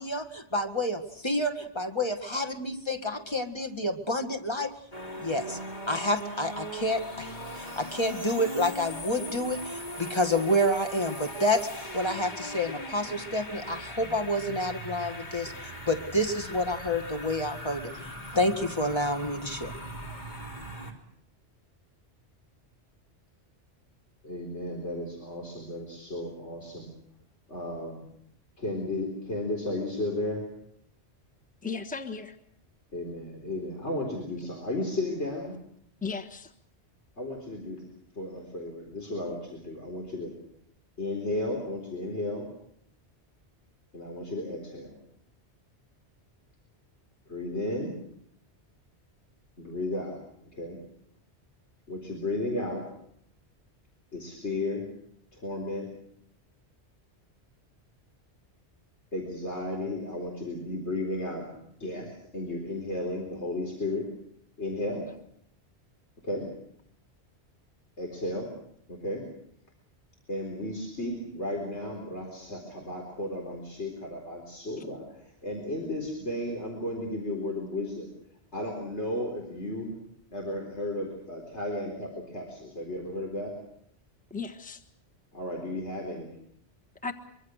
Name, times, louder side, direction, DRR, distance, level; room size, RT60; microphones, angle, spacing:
voice 1, 0.0-4.7 5.2-5.6 5.9-19.7, left 1 dB, 25° left, 1.8 m, -29 dB
sound 1, 4.9-20.9, equal, 40° left, 3.5 m, -39 dB
voice 2, 24.2-26.9 27.5-28.0 28.6-30.4 32.9-35.6 37.2-37.9 38.2-40.3 41.0-42.5 43.9-45.0 47.3-48.0 49.6-50.8 51.9-52.8 54.1-54.9 55.3-55.9 59.1-64.0 64.6-65.1 66.2-66.5 68.0-68.5 68.9-69.2 70.3-78.1 78.5-79.9 80.3-83.5 85.3-86.4, left 1 dB, 80° left, 4.6 m, -34 dB
voice 3, 31.6-32.4 36.0-36.5 84.3-84.8 87.0-87.1, left 5 dB, 5° left, 1.3 m, -35 dB
24.5 x 24.0 x 6.5 m
omnidirectional pair, 1.1 m